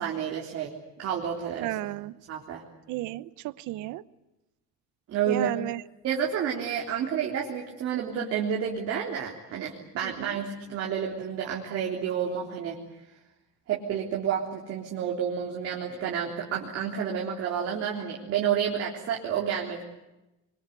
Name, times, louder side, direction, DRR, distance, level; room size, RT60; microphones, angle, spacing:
voice 1, 0.0-1.7 2.3-2.6 5.1-5.5 6.0-12.8 13.7-19.8, right 8 dB, 50° right, -1 dB, 3.7 m, -30 dB
voice 2, 1.6-2.1 2.9-4.0 5.3-5.8 10.0-10.4, right 17 dB, 85° right, 17 dB, 0.9 m, -33 dB
26.5 x 24.0 x 8.3 m, 0.99 s
cardioid pair, 170°, 29 cm